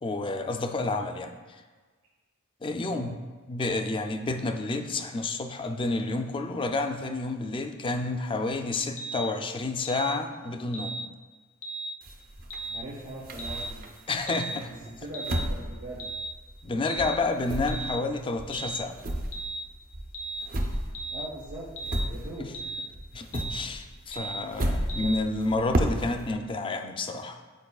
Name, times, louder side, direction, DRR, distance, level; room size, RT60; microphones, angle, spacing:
voice 1, 0.0-1.6 2.6-3.2 3.5-11.0 14.1-14.7 16.6-19.0 22.4-22.5 23.1-27.4, left 2 dB, 25° left, 6 dB, 0.4 m, -30 dB
sound 1, 9.0-9.3 9.8-10.1 10.7-11.0 11.6-11.9 12.5-12.8 13.4-13.7 14.3-14.6 15.1-15.4 16.0-16.3 16.8-17.1 17.7-18.0 18.5-18.8 19.3-19.6 20.1-20.4 20.9-21.2 21.8-22.0 22.5-22.8 23.3-23.6 24.1-24.4 24.9-25.2, right 2 dB, 70° left, 0.6 m, -35 dB
sound 2, 12.0-14.2 14.6-16.7 17.0-22.7 22.9-26.3, right 1 dB, 45° right, 0.6 m, -33 dB
voice 2, 12.7-13.8 14.3-16.0 21.1-22.9, right 1 dB, 75° right, -7 dB, 1.2 m, -41 dB
9.2 x 4.5 x 2.3 m, 1.4 s
head